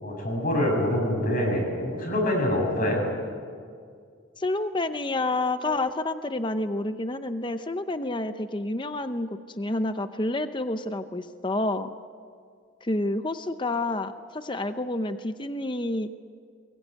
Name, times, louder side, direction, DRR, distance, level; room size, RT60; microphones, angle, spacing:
voice 1, 0.0-3.0, left 1 dB, 40° left, 0 dB, 7.3 m, -25 dB
voice 2, 4.4-11.9 12.8-16.1, left 2 dB, 25° left, 9 dB, 0.7 m, -29 dB
22.5 x 22.0 x 9.5 m, 2.2 s
head